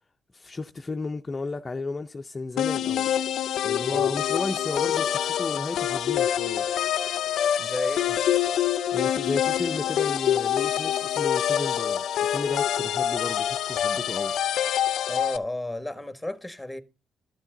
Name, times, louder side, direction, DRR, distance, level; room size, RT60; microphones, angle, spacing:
voice 1, 0.3-3.1 3.6-6.6 8.9-14.3, left 3 dB, 25° left, 0.5 m, -33 dB
sound 1, 2.6-15.4, left 10 dB, 75° left, 0.5 m, -26 dB
voice 2, 7.6-8.2 15.0-16.8, left 1 dB, 5° left, 1.2 m, -33 dB
12.0 x 7.2 x 3.8 m
cardioid pair, 90°, 0 cm